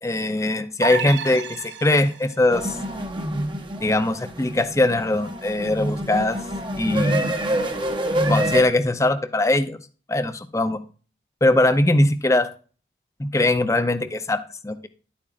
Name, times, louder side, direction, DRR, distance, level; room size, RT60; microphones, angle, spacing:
voice 1, 0.0-2.8 3.8-6.4 6.7-7.3 8.3-9.8 10.1-10.8 11.4-12.5 13.2-14.9, left 2 dB, 15° left, 11 dB, 0.6 m, -21 dB
sound 1, 0.8-2.4, right 6 dB, 80° right, 0.7 m, -30 dB
sound 2, 2.5-8.6, right 1 dB, 25° right, 1.0 m, -26 dB
11.0 x 8.5 x 2.5 m, 0.38 s
head